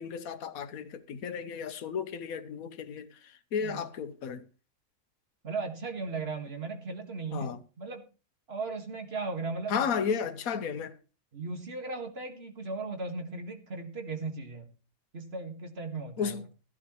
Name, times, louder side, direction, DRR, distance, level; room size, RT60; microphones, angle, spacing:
voice 1, 0.0-4.5 7.3-7.6 9.7-11.0 16.2-16.4, left 6 dB, 80° left, 1.3 m, -33 dB
voice 2, 5.4-8.0 8.5-9.9 11.3-14.7 15.1-16.4, right 3 dB, 45° right, 2.0 m, -37 dB
15.5 x 11.0 x 3.1 m
omnidirectional pair, 1.5 m